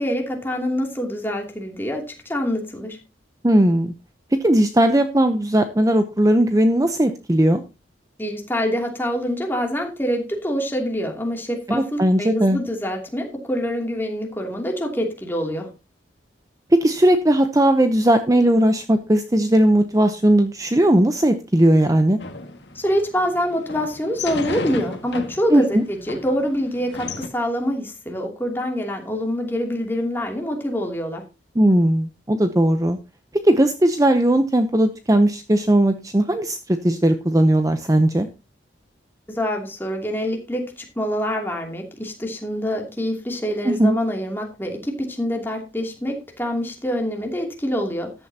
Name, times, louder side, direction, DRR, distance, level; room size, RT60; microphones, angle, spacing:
voice 1, 0.0-3.0 8.2-15.7 22.7-31.2 39.3-48.1, equal, 10° left, 1 dB, 2.7 m, -25 dB
voice 2, 3.4-3.9 4.3-7.6 11.7-12.6 16.7-22.2 25.5-25.8 31.6-33.0 33.4-38.3 43.6-44.0, right 1 dB, 20° right, 8 dB, 0.7 m, -18 dB
sound 1, 22.2-27.3, left 3 dB, 70° left, 1.9 m, -35 dB
14.0 x 11.0 x 2.8 m, 0.29 s
head